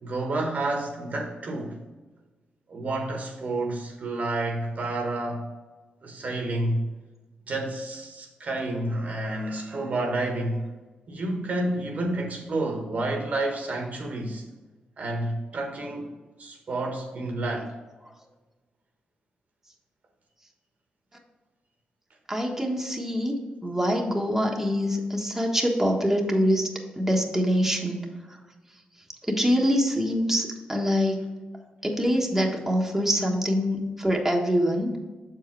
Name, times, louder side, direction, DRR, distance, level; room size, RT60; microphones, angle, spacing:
voice 1, 0.0-1.8 2.7-5.5 6.0-6.9 7.5-10.7 11.1-14.4 15.0-16.1 16.4-17.8 32.9-33.0, right 2 dB, 55° right, 3 dB, 1.3 m, -29 dB
voice 2, 22.3-23.4 23.6-26.7 27.0-28.0 29.3-31.2 31.8-34.9, equal, 10° right, 0 dB, 1.4 m, -24 dB
6.8 x 4.7 x 4.6 m, 1.2 s
cardioid pair, 65°, 3 cm